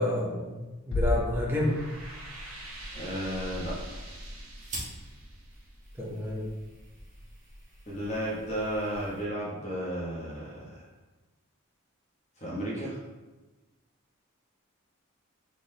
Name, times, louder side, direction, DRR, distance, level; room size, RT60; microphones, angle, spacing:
voice 1, 0.0-1.8 6.0-6.5, left 1 dB, 10° right, -3 dB, 0.7 m, -29 dB
Bass drum, 0.9-2.6, left 1 dB, 60° left, 0.4 m, -31 dB
sound 1, 1.2-6.4, right 2 dB, 70° right, 0.9 m, -47 dB
sound 2, 1.5-9.2, right 1 dB, 35° right, 1.1 m, -45 dB
voice 2, 2.9-4.0 7.9-10.8 12.4-13.0, equal, 30° left, -6 dB, 1.2 m, -33 dB
4.0 x 3.6 x 3.3 m, 1.2 s
head